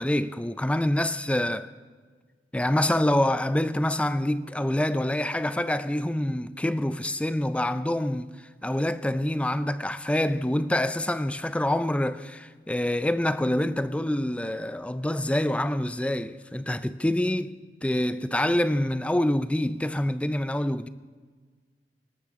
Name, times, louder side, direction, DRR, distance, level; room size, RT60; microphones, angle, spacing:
voice 1, 0.0-1.7 2.5-8.3 8.6-17.5 17.8-20.9, left 1 dB, 5° left, 0.4 m, -26 dB
19.0 x 13.0 x 3.7 m
head